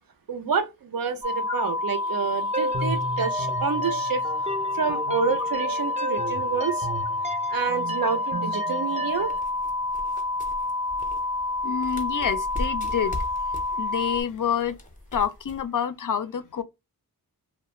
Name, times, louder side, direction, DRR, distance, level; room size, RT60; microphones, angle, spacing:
voice 1, 0.3-4.2 4.7-6.9 7.5-9.3, right 6 dB, 65° right, 0.6 m, -28 dB
sound 1, 1.2-14.2, left 2 dB, 85° right, 1.1 m, -28 dB
sound 2, 2.5-9.4, right 2 dB, 20° right, 0.5 m, -33 dB
sound 3, 9.1-15.7, left 1 dB, 20° left, 0.6 m, -39 dB
voice 2, 11.6-14.8 15.1-16.6, left 8 dB, 55° left, 0.5 m, -28 dB
2.4 x 2.1 x 2.9 m
cardioid pair, 50°, 38 cm